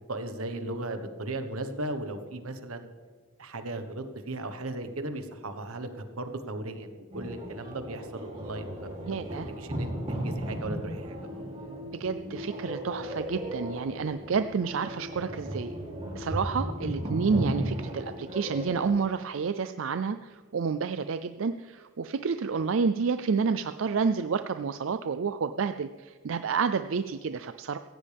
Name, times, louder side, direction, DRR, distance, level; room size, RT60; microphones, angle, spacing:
voice 1, 0.1-2.9 3.4-9.2 9.5-11.4, right 2 dB, 85° right, 8 dB, 1.4 m, -37 dB
sound 1, 7.1-18.9, equal, 30° right, 3.2 m, -35 dB
voice 2, 9.1-9.5 11.9-15.7 16.1-27.8, right 5 dB, 65° right, 10 dB, 0.4 m, -29 dB
17.0 x 15.5 x 3.5 m, 1.5 s
head